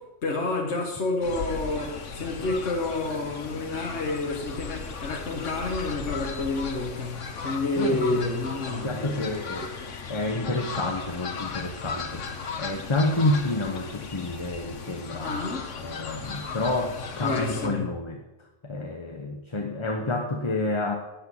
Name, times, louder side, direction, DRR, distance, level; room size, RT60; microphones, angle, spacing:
voice 1, 0.0-9.3 15.2-15.7 17.2-17.8, left 2 dB, 65° left, 0 dB, 1.7 m, -29 dB
Fowl, 1.2-17.7, left 5 dB, 90° left, 1.5 m, -36 dB
voice 2, 7.7-8.2 8.7-9.7 10.1-12.3 12.6-15.4 15.8-18.2 18.6-20.9, left 2 dB, 25° left, 3 dB, 1.0 m, -29 dB
10.5 x 7.8 x 7.2 m, 1.0 s
omnidirectional pair, 1.2 m